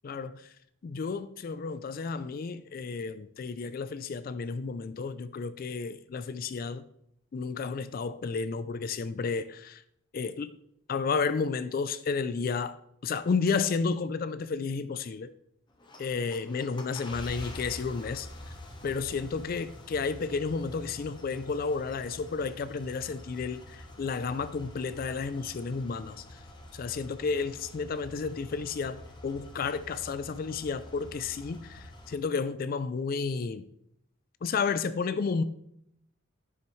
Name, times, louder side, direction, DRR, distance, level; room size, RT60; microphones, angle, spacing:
voice 1, 0.0-0.4 0.8-6.8 7.3-9.8 10.1-10.5 10.9-12.8 13.0-15.3 16.0-18.3 18.8-26.2 26.7-33.6 34.4-35.4, left 5 dB, 45° left, 13 dB, 0.3 m, -32 dB
sound 1, 15.7-32.2, left 1 dB, 20° left, 1.0 m, -47 dB
9.9 x 7.1 x 3.2 m, 0.75 s
head